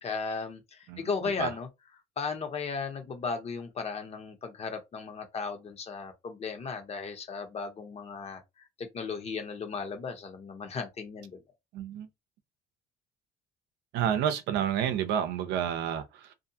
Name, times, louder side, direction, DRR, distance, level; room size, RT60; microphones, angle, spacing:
voice 1, 0.0-0.6 1.0-1.7 2.2-8.4 8.8-11.4, left 5 dB, 40° left, 0.9 m, -35 dB
voice 2, 0.9-1.5 11.7-12.1 13.9-16.3, right 9 dB, 85° right, 0.6 m, -30 dB
2.6 x 2.4 x 2.7 m
cardioid pair, 110°, 17 cm